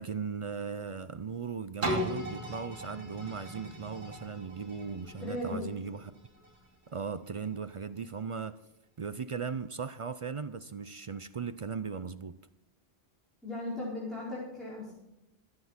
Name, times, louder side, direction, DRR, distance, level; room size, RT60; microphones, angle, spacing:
voice 1, 0.0-6.1 6.9-8.6 9.0-12.4, right 6 dB, 50° right, 0.4 m, -38 dB
sound 1, 1.8-7.5 8.1-8.2, equal, 75° right, 2.7 m, -38 dB
voice 2, 5.2-5.7 13.4-14.9, left 1 dB, ahead, 4.9 m, -37 dB
14.5 x 9.5 x 5.8 m
omnidirectional pair, 1.1 m